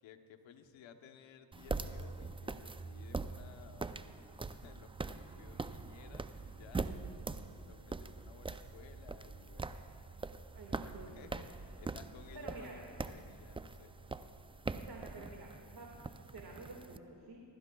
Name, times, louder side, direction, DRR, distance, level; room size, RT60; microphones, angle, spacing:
voice 1, 0.0-4.0 4.5-7.2 7.6-9.9 10.8-13.9, left 7 dB, 80° left, 6 dB, 0.9 m, -57 dB
sound 1, 1.5-17.0, right 3 dB, 10° right, 0.4 m, -43 dB
voice 2, 10.5-11.3 12.3-12.8 14.7-17.4, right 2 dB, 55° right, -1 dB, 1.9 m, -50 dB
23.5 x 12.0 x 2.3 m, 2.6 s
supercardioid pair, 50°, 45 cm